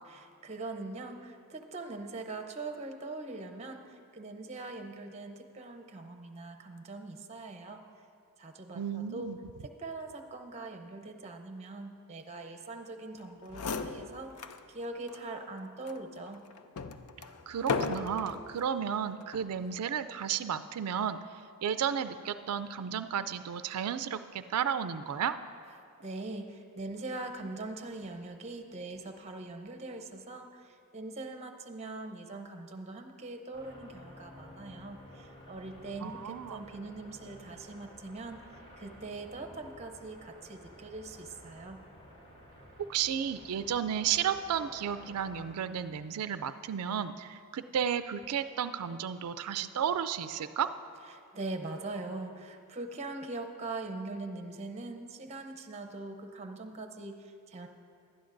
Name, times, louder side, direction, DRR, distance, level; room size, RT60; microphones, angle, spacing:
voice 1, 0.1-7.8 8.4-9.3 9.6-16.4 26.0-38.4 38.8-41.8 51.3-57.7, right 2 dB, 30° right, 5 dB, 0.7 m, -42 dB
voice 2, 8.7-9.4 17.5-21.2 21.6-25.4 36.0-36.6 42.9-50.7, right 8 dB, 85° right, 11 dB, 0.4 m, -33 dB
sound 1, 13.2-13.3 13.5-14.6 15.1-15.2 15.8-18.4 19.2-19.6, left 4 dB, 80° left, 0.5 m, -36 dB
sound 2, 33.5-45.5, equal, 25° left, 2.8 m, -53 dB
19.0 x 12.0 x 2.6 m, 2.5 s
head